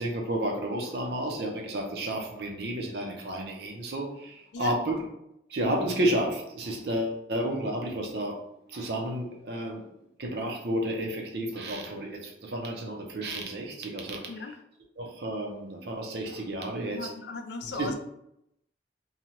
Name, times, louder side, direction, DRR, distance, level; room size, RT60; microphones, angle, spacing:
voice 1, 0.0-5.0 5.5-8.4 8.7-9.8 10.2-14.3 15.0-17.1 17.8-17.9, right 1 dB, 65° right, 1 dB, 0.6 m, -31 dB
voice 2, 16.9-18.0, left 3 dB, 70° left, 6 dB, 0.4 m, -37 dB
2.7 x 2.3 x 3.0 m, 0.79 s
head